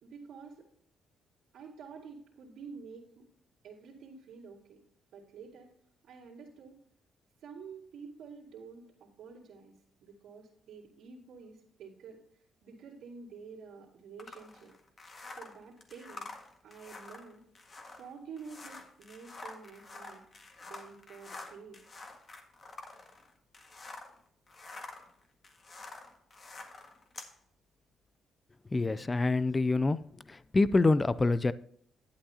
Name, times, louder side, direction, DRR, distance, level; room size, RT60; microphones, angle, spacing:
voice 1, 0.0-0.7 1.5-3.3 3.6-4.8 5.1-5.7 6.0-6.8 7.4-9.8 10.0-14.7 15.3-16.3 16.6-17.4 18.0-20.2 20.6-21.8, right 5 dB, 75° right, -6 dB, 2.7 m, -49 dB
sound 1, 14.2-24.2 24.5-27.3, left 3 dB, 40° left, 1.7 m, -48 dB
voice 2, 28.7-30.0 30.3-31.5, left 3 dB, 25° left, 17 dB, 0.4 m, -26 dB
11.5 x 8.7 x 2.8 m, 0.66 s
cardioid pair, 90°, 0 cm